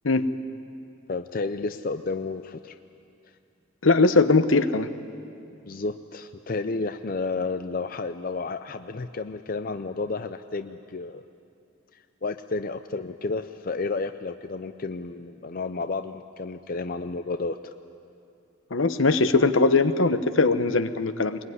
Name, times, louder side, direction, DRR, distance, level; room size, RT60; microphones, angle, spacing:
voice 1, 1.1-2.8 5.7-11.2 11.9-17.7, left 3 dB, 45° left, 9 dB, 0.5 m, -31 dB
voice 2, 3.8-4.9 18.7-21.4, left 3 dB, 75° left, 11 dB, 1.0 m, -20 dB
22.5 x 21.0 x 9.7 m, 2.5 s
head